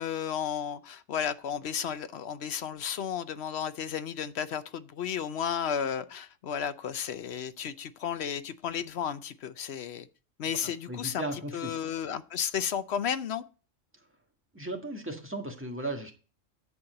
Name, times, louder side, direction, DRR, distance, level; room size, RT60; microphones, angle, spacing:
voice 1, 0.0-10.1 10.4-11.3 11.5-13.4, left 8 dB, 60° left, 0.9 m, -33 dB
voice 2, 10.6-11.8 14.5-16.1, right 1 dB, 10° right, 1.6 m, -36 dB
11.0 x 4.3 x 7.7 m
omnidirectional pair, 1.3 m